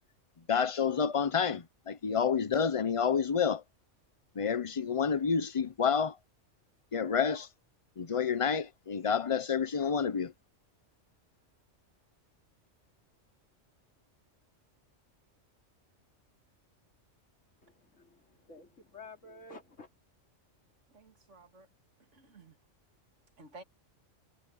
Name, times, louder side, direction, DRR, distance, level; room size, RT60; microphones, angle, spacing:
voice 1, 0.5-3.6 4.4-6.2 6.9-7.5 8.0-10.3, left 6 dB, 30° left, 0.7 m, -29 dB
voice 2, 17.6-19.9, left 3 dB, 90° left, 3.3 m, -51 dB
voice 3, 20.9-21.7 22.1-22.6 23.4-23.6, right 2 dB, 75° right, 2.4 m, -53 dB
omnidirectional pair, 1.3 m